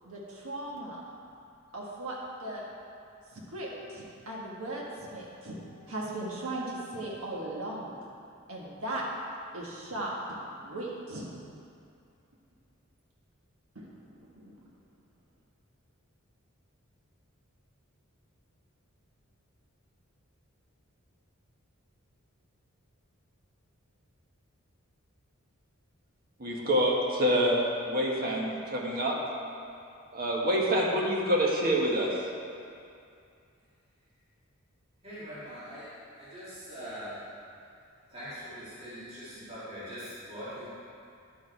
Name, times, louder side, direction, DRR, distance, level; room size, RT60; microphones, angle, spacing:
voice 1, 0.0-1.0 1.7-2.7 3.3-8.0 8.5-9.0 9.5-11.3 13.7-14.6, right 1 dB, 80° right, -4 dB, 1.5 m, -38 dB
voice 2, 26.4-29.1 30.1-32.1, equal, 45° right, -2 dB, 1.5 m, -26 dB
voice 3, 35.0-35.9 36.2-37.2 38.1-40.7, equal, 30° right, -12 dB, 2.3 m, -42 dB
11.0 x 6.2 x 4.6 m, 2.5 s
head